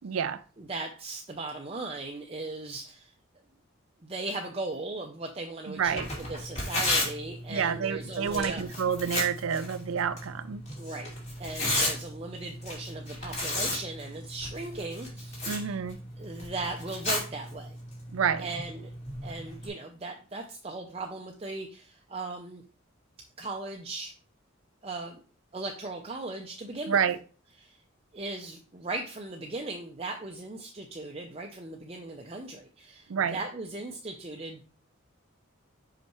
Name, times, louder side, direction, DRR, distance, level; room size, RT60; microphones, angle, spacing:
voice 1, 0.0-0.4 5.7-6.1 7.5-10.6 15.4-16.0 18.1-18.5 26.9-27.2 33.1-33.4, right 7 dB, 75° right, 0.5 m, -28 dB
voice 2, 0.6-3.1 4.0-8.6 10.8-15.8 16.2-17.8 18.4-18.9 19.2-22.6 23.4-24.1 24.8-25.2 25.5-27.0 27.6-27.8 28.1-34.6, right 2 dB, 30° right, 0.6 m, -38 dB
Tearing, 5.9-19.7, left 1 dB, 30° left, 2.7 m, -34 dB
5.8 x 5.3 x 3.0 m
head